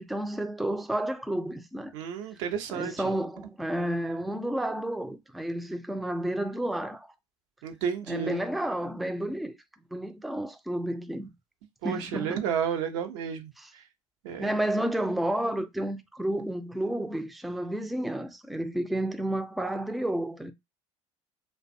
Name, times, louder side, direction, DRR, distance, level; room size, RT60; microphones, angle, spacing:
voice 1, 0.0-1.9 2.7-7.1 8.1-9.6 9.9-11.3 11.8-12.4 13.6-13.7 14.4-20.5, right 1 dB, ahead, 0.4 m, -31 dB
voice 2, 1.9-2.9 7.6-8.4 11.8-13.8 14.2-14.5, right 7 dB, 80° right, 0.6 m, -32 dB
2.5 x 2.2 x 2.6 m
hypercardioid pair, 70°, 16 cm